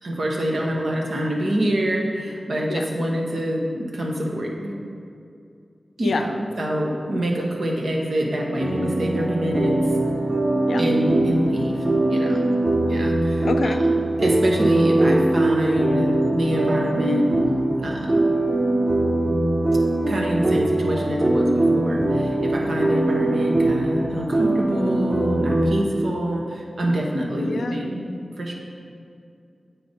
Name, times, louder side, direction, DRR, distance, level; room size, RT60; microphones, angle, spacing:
voice 1, 0.0-4.8 6.0-9.9 10.8-12.4 12.9-17.3 17.8-18.3 20.1-28.0 28.4-28.5, equal, 75° right, -1 dB, 1.1 m, -26 dB
sound 1, 8.6-25.6, right 2 dB, 50° right, 1.4 m, -21 dB
voice 2, 13.4-13.8 27.4-27.8, left 4 dB, 90° left, 7 dB, 0.4 m, -27 dB
7.6 x 4.1 x 5.2 m, 2.4 s
cardioid pair, 55°, 0 cm